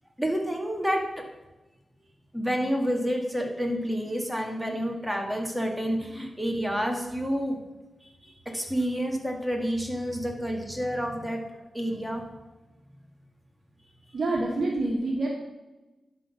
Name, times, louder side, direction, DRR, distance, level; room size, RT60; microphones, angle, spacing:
voice 1, 0.2-1.0 2.3-7.6 8.0-11.4 11.7-12.2, equal, ahead, 1 dB, 1.8 m, -29 dB
voice 2, 14.1-15.3, right 2 dB, 60° right, -2 dB, 1.5 m, -27 dB
11.5 x 3.9 x 5.9 m, 1.1 s
cardioid pair, 75°, 0 cm